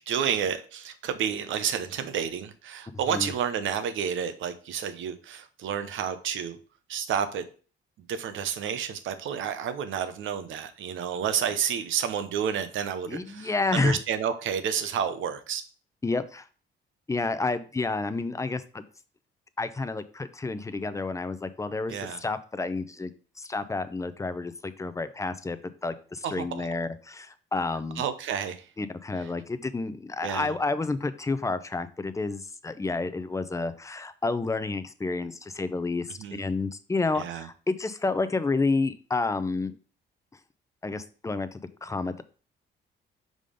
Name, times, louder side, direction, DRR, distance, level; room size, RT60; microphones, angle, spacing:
voice 1, 0.1-6.6 6.9-7.4 8.1-15.6 21.9-22.2 26.2-26.7 28.0-28.7 30.2-30.5 36.2-36.4 37.1-37.5, right 8 dB, 75° right, 10 dB, 0.8 m, -30 dB
voice 2, 13.1-14.0 16.0-16.5 17.1-18.8 19.6-23.1 23.4-25.6 25.8-28.0 28.8-39.8 40.8-42.2, left 3 dB, 15° left, 12 dB, 0.6 m, -30 dB
5.2 x 3.9 x 5.1 m, 0.39 s
cardioid pair, 90°, 20 cm